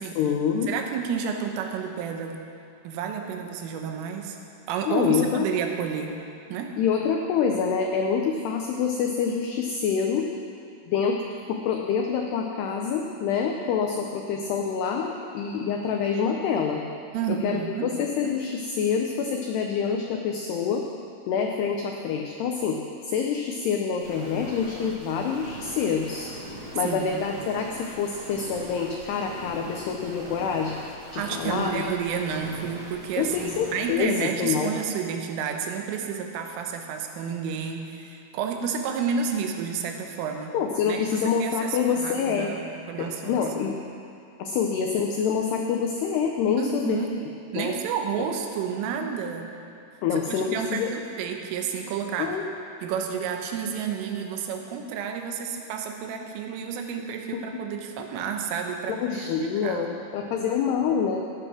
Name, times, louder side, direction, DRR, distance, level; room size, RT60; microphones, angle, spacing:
voice 1, 0.2-0.7 4.9-5.5 6.8-10.3 10.9-11.2 11.5-16.8 17.3-20.9 21.3-22.8 23.0-26.3 26.8-30.7 31.1-31.8 33.2-34.7 40.5-42.5 43.0-43.8 44.4-47.0 47.6-47.7 50.0-50.9 52.2-52.4 59.0-61.2, left 6 dB, 85° left, 2 dB, 2.3 m, -26 dB
voice 2, 0.7-2.4 2.9-4.4 4.7-6.2 6.5-6.7 17.1-17.9 26.8-27.3 31.2-40.5 40.9-43.4 46.6-47.1 47.5-49.5 50.3-52.4 52.8-59.9, right 6 dB, 85° right, 3 dB, 3.6 m, -30 dB
sound 1, 24.0-34.0, right 1 dB, 45° right, 1.7 m, -41 dB
15.5 x 10.0 x 6.2 m, 2.4 s
omnidirectional pair, 5.8 m